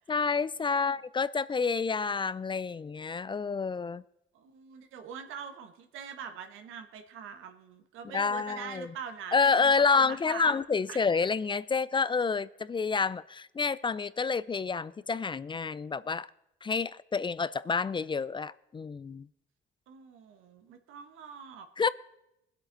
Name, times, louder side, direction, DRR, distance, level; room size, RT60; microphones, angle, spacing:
voice 1, 0.1-4.0 8.1-8.9 9.3-16.3 16.6-19.3 21.8-21.9, left 5 dB, 25° left, 0.4 m, -28 dB
voice 2, 0.6-1.0 4.3-10.6 10.9-11.0 19.9-21.9, right 7 dB, 85° right, 1.2 m, -44 dB
21.0 x 8.2 x 3.9 m
cardioid pair, 90°, 20 cm